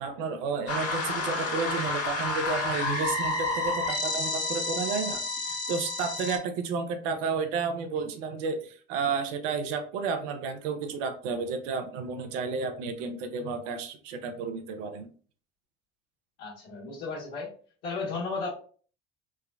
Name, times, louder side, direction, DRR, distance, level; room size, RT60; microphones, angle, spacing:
voice 1, 0.0-15.1, right 5 dB, 80° right, 8 dB, 0.6 m, -32 dB
sound 1, 0.7-6.4, left 3 dB, 40° left, 1.5 m, -30 dB
voice 2, 16.4-17.5 17.8-18.5, left 4 dB, 75° left, -9 dB, 1.3 m, -34 dB
3.4 x 2.1 x 2.3 m, 0.43 s
hypercardioid pair, 75°, 37 cm